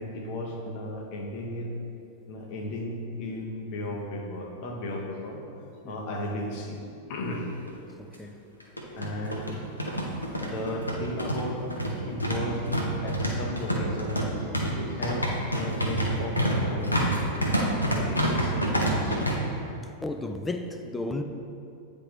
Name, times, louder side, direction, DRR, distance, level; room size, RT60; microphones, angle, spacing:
voice 1, 0.0-1.7 2.3-5.4 5.9-7.6 9.0-9.7 10.4-11.6 11.9-17.0 17.9-19.2, left 1 dB, 45° left, 1 dB, 0.8 m, -35 dB
sound 1, 7.3-7.4 7.7-7.8 8.6-19.3, right 1 dB, 85° left, 0.7 m, -27 dB
voice 2, 8.0-8.4 20.0-21.2, left 2 dB, 10° left, 6 dB, 0.4 m, -33 dB
8.7 x 3.5 x 3.2 m, 2.6 s
figure-of-eight pair, 90°, 0 cm